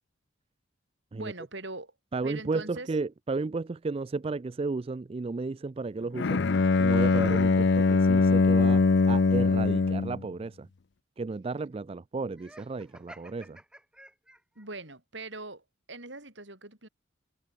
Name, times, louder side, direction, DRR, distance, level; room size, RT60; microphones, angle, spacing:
voice 1, 1.1-1.9 2.2-2.9 14.6-16.9, right 2 dB, 60° right, 6.0 m, -41 dB
voice 2, 2.1-6.4 6.8-10.7 11.2-13.6, right 3 dB, 30° right, 0.3 m, -33 dB
Bowed string instrument, 6.2-10.2, left 4 dB, 60° left, 0.5 m, -22 dB
Laughter, 12.3-14.7, right 1 dB, 5° right, 3.3 m, -52 dB
head